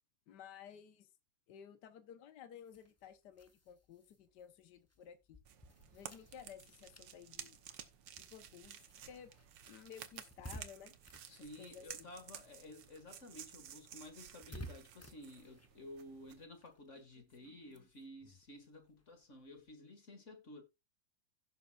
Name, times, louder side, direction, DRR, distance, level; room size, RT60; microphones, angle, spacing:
voice 1, 0.3-1.1 1.5-5.4 5.9-7.6 8.2-9.3 9.6-10.9 11.3-12.1, left 8 dB, 70° left, 1.6 m, -55 dB
sound 1, 2.6-12.5 12.8-19.7, equal, 20° left, 0.4 m, -57 dB
sound 2, 5.4-16.4, right 9 dB, 85° right, 1.7 m, -54 dB
voice 2, 11.3-20.6, left 1 dB, 40° left, 2.3 m, -53 dB
16.0 x 7.2 x 2.5 m
omnidirectional pair, 1.9 m